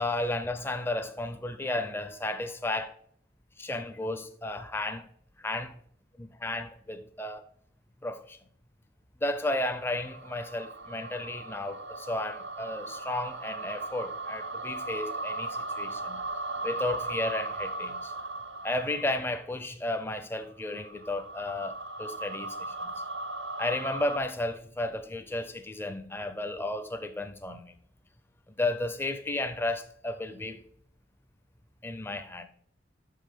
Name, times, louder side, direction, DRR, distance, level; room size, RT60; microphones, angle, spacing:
voice 1, 0.0-2.9 3.6-5.1 5.4-5.8 6.2-7.4 8.0-8.4 9.2-16.2 16.6-18.1 18.6-22.9 23.6-27.7 28.6-30.6 31.8-32.5, left 2 dB, 15° left, 0.4 m, -33 dB
sound 1, 9.6-19.4 20.5-24.2, right 2 dB, 70° right, 0.6 m, -37 dB
5.9 x 5.5 x 5.0 m
head